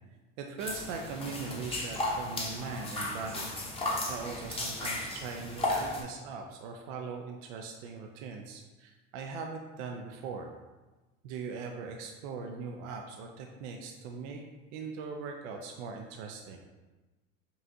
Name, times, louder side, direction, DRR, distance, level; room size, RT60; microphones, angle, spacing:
voice 1, 0.4-3.5 4.1-10.5 11.2-14.4 14.7-16.6, right 5 dB, 60° right, 2 dB, 0.6 m, -40 dB
sound 1, 0.6-6.0, left 2 dB, 15° left, 0.9 m, -35 dB
5.5 x 2.4 x 2.7 m, 1.2 s
hypercardioid pair, 95°, 40 cm